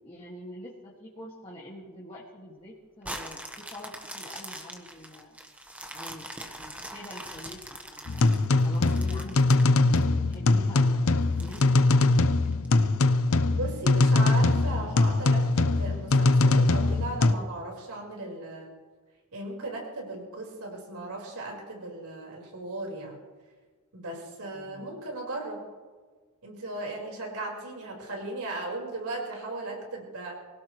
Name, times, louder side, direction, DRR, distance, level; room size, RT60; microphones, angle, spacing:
voice 1, 0.0-5.4 5.9-8.3 8.6-12.4 24.5-24.9, left 1 dB, 25° left, -5 dB, 2.0 m, -45 dB
sound 1, 3.0-10.3 10.8-10.9 11.4-12.7 13.2-13.3, right 1 dB, 5° right, 1.2 m, -42 dB
sound 2, 8.1-17.3, left 2 dB, 70° left, 0.7 m, -22 dB
voice 2, 13.5-18.7 19.3-23.2 23.9-25.6 26.4-30.3, right 2 dB, 85° right, -1 dB, 4.8 m, -37 dB
24.0 x 17.0 x 3.2 m, 1.4 s
head